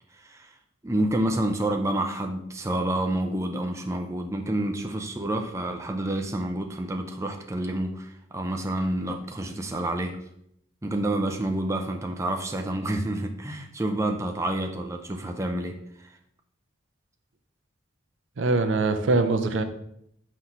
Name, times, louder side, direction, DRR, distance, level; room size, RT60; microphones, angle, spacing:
voice 1, 0.1-0.5 0.8-10.2 10.8-16.1, right 1 dB, 15° right, 3 dB, 0.4 m, -29 dB
voice 2, 18.4-19.6, right 3 dB, 70° right, 7 dB, 0.6 m, -23 dB
5.8 x 3.1 x 5.5 m, 0.74 s
head